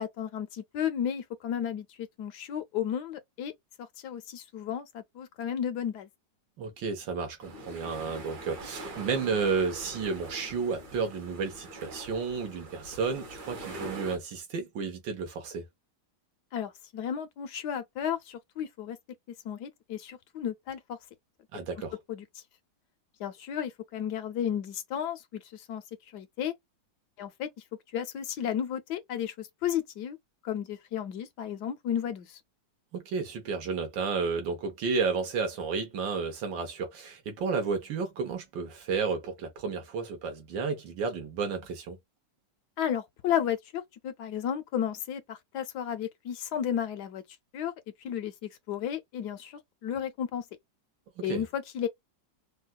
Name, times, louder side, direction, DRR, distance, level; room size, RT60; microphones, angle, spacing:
voice 1, 0.0-3.5 4.0-6.1 16.5-19.0 19.4-21.0 22.1-22.2 23.2-25.8 26.1-26.5 27.2-27.5 27.9-30.2 30.4-32.4 42.8-47.2 47.5-47.7 48.0-50.4 51.2-51.9, left 9 dB, 75° left, 1.1 m, -33 dB
voice 2, 6.6-15.6 21.5-21.9 32.9-42.0 51.2-51.4, right 5 dB, 85° right, 1.8 m, -32 dB
sound 1, 7.4-14.2, right 1 dB, 65° right, 1.8 m, -43 dB
4.1 x 2.3 x 2.3 m
omnidirectional pair, 2.0 m